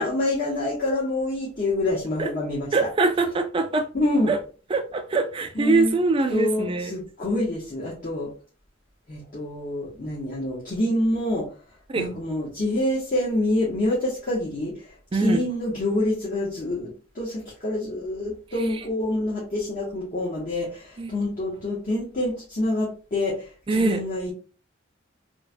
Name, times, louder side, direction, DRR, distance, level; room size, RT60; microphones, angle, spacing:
voice 1, 0.0-2.7 3.9-4.3 5.5-5.9 6.3-8.3 9.1-11.5 11.9-24.3, left 1 dB, 45° left, 0.8 m, -26 dB
voice 2, 2.7-3.9 4.3-4.4 4.7-6.9 11.9-12.1 15.1-15.4 21.0-21.1 23.7-24.0, right 3 dB, 25° right, 0.3 m, -23 dB
3.0 x 2.1 x 2.4 m
head